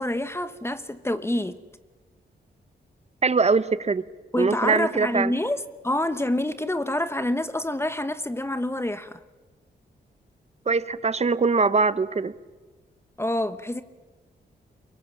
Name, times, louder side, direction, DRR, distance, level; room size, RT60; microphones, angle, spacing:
voice 1, 0.0-1.6 4.3-9.2 13.2-13.8, left 1 dB, 15° left, 1.1 m, -27 dB
voice 2, 3.2-4.0 4.3-5.3 10.7-12.3, right 4 dB, 35° right, 1.0 m, -22 dB
24.5 x 22.5 x 7.3 m
cardioid pair, 80°, 19 cm